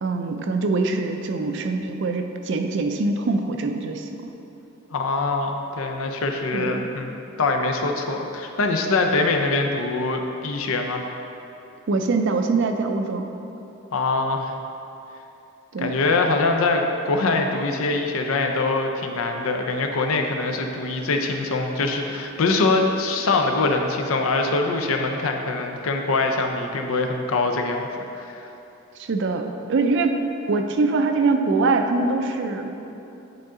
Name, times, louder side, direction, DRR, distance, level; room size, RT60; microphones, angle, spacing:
voice 1, 0.0-4.3 6.5-6.9 11.9-13.3 15.7-15.9 29.0-30.2 30.5-32.7, right 3 dB, 55° right, 5 dB, 0.4 m, -23 dB
voice 2, 4.9-11.1 13.9-14.5 15.8-27.9 28.1-28.5, left 3 dB, 70° left, 4 dB, 0.5 m, -23 dB
8.8 x 3.8 x 3.7 m, 2.9 s
head